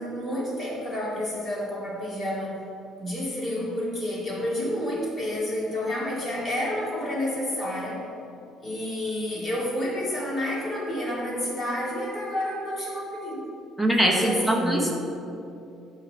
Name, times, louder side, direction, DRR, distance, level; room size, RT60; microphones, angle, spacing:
voice 1, 0.0-2.6 3.0-8.0 8.6-13.4 14.2-14.8, left 1 dB, 25° left, -5 dB, 2.3 m, -29 dB
voice 2, 13.8-15.0, right 1 dB, ahead, -1 dB, 1.1 m, -22 dB
11.0 x 4.8 x 6.6 m, 2.7 s
cardioid pair, 175°, 0 cm